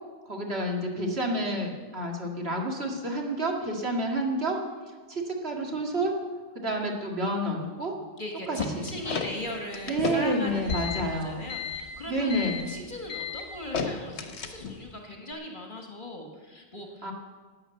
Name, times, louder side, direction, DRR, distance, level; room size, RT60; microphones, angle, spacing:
voice 1, 0.3-4.6 5.1-6.1 6.5-7.9 8.5-8.6 9.9-11.5 12.1-12.7 17.0-17.1, right 1 dB, 45° right, 0 dB, 2.3 m, -29 dB
voice 2, 8.2-17.1, left 1 dB, 35° left, 1 dB, 1.8 m, -38 dB
sound 1, 8.6-14.9, left 5 dB, 55° left, 1.3 m, -33 dB
11.5 x 9.9 x 7.8 m, 1.4 s
omnidirectional pair, 1.4 m